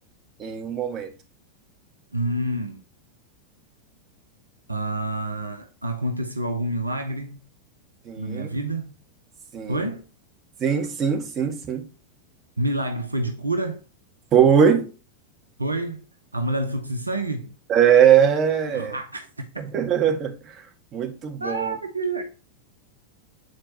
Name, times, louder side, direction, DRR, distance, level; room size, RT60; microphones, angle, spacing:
voice 1, 0.4-1.1 8.0-8.5 9.5-9.8 10.6-11.8 14.3-14.9 17.7-19.0 19.6-20.5 20.9-21.8, right 8 dB, 30° right, 1.4 m, -20 dB
voice 2, 2.1-2.8 4.7-7.4 8.2-9.0 9.7-10.0 12.6-13.8 15.6-16.0 16.3-17.6 18.7-19.3 21.4-22.2, right 1 dB, 80° right, 0.7 m, -28 dB
7.7 x 4.4 x 2.8 m
figure-of-eight pair, 90°, 0 cm